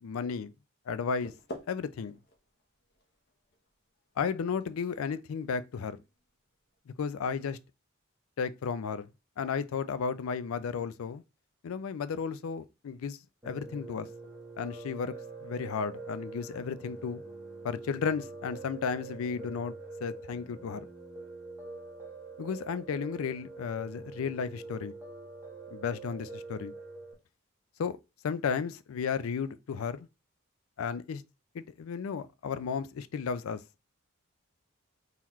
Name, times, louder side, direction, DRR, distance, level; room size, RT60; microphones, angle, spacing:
voice 1, 0.0-0.5 0.9-1.3 1.7-2.2 4.2-6.0 7.0-7.6 8.4-9.1 9.4-11.2 11.6-13.2 13.4-14.1 14.6-15.1 15.4-17.2 17.6-19.7 20.0-20.9 22.4-24.9 25.7-26.7 27.8-28.0 28.2-30.1 30.8-31.2 31.5-33.6, left 6 dB, 75° left, 0.4 m, -33 dB
sound 1, 0.9-6.8, equal, 50° left, 0.9 m, -51 dB
Piano, 13.4-27.1, right 3 dB, 10° right, 1.0 m, -45 dB
3.8 x 2.9 x 3.0 m
head